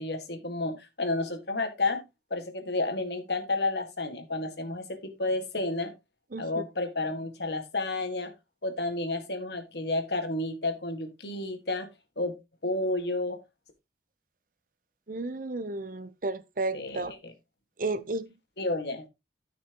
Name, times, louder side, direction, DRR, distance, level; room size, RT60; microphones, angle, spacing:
voice 1, 0.0-2.0 2.3-5.9 6.4-8.3 8.6-11.9 12.2-12.4 12.6-13.4 16.7-17.3 18.6-19.1, left 2 dB, 70° left, 1.9 m, -31 dB
voice 2, 6.3-6.6 15.1-17.1 17.8-18.3, right 2 dB, 50° right, 0.8 m, -33 dB
14.0 x 6.1 x 3.0 m
head